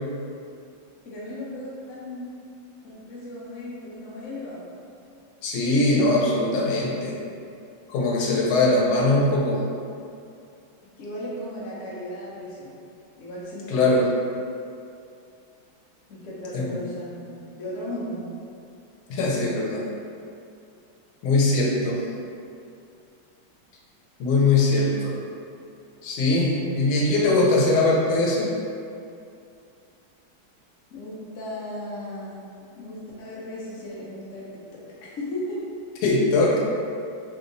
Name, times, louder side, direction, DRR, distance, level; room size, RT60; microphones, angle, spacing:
voice 1, 1.0-2.3 2.8-4.6 11.0-12.7 13.1-13.9 16.1-18.3 30.9-32.4 32.7-34.4 34.7-34.8 35.2-35.6, left 1 dB, 65° left, -6 dB, 0.7 m, -35 dB
voice 2, 5.4-7.1 7.9-9.6 13.7-14.0 16.5-16.7 19.1-19.8 21.2-22.0 24.2-25.1 26.0-28.5 36.0-36.6, left 2 dB, 90° left, -3 dB, 1.5 m, -21 dB
3.4 x 2.8 x 2.6 m, 2.5 s
omnidirectional pair, 2.2 m